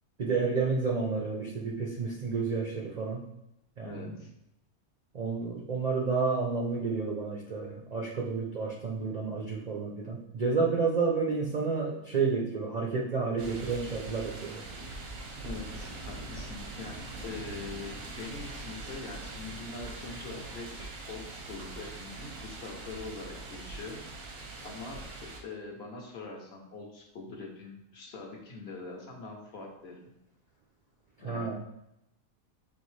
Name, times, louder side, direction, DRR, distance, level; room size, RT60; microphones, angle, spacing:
voice 1, 0.2-3.2 3.8-4.1 5.1-14.6 31.2-31.5, right 4 dB, 65° right, -2 dB, 0.4 m, -30 dB
voice 2, 3.8-4.3 15.4-24.0 24.6-30.1 31.2-31.5, left 3 dB, 55° left, 0 dB, 0.9 m, -43 dB
sound 1, 13.4-25.4, right 2 dB, 90° right, 1.2 m, -42 dB
4.5 x 3.1 x 3.2 m, 0.84 s
omnidirectional pair, 1.5 m